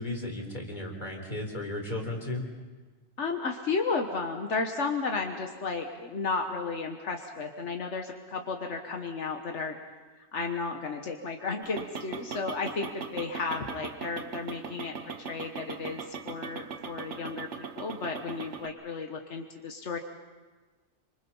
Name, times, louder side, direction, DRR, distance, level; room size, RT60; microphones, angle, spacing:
voice 1, 0.0-2.4, left 2 dB, 40° left, 0 dB, 4.1 m, -35 dB
voice 2, 3.2-9.8 10.3-17.5 17.8-20.0, left 4 dB, 85° left, 3 dB, 1.6 m, -33 dB
sound 1, 11.6-18.7, right 6 dB, 85° right, 1.4 m, -40 dB
27.5 x 25.0 x 5.5 m, 1.3 s
omnidirectional pair, 1.2 m